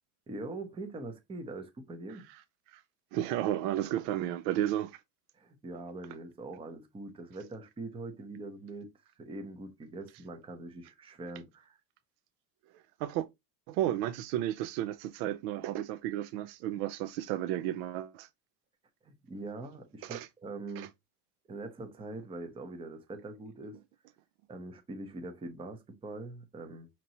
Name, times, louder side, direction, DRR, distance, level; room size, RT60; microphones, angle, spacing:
voice 1, 0.3-2.3 5.3-8.9 9.2-11.8 19.0-20.9 21.5-23.8 24.5-26.9, right 2 dB, 10° right, 0.6 m, -43 dB
voice 2, 3.1-5.0 13.0-13.3 13.7-18.3 20.0-20.3 20.8-20.9, right 12 dB, 70° right, 0.5 m, -33 dB
5.1 x 2.9 x 2.8 m
supercardioid pair, 110°, 48 cm